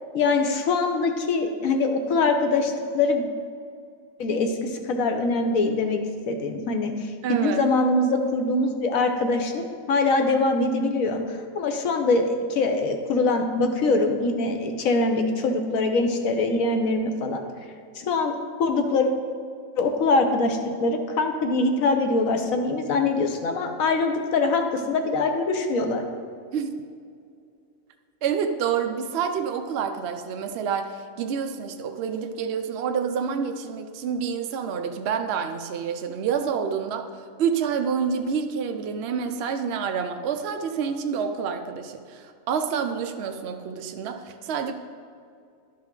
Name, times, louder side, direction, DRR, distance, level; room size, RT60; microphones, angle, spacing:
voice 1, 0.1-3.2 4.2-6.0 6.3-17.4 17.9-19.1 19.8-26.0, left 3 dB, 80° left, 5 dB, 1.2 m, -23 dB
voice 2, 7.2-7.6 26.5-26.8 28.2-44.7, right 6 dB, 60° right, 6 dB, 0.7 m, -28 dB
11.5 x 5.6 x 3.8 m, 2.3 s
omnidirectional pair, 1.4 m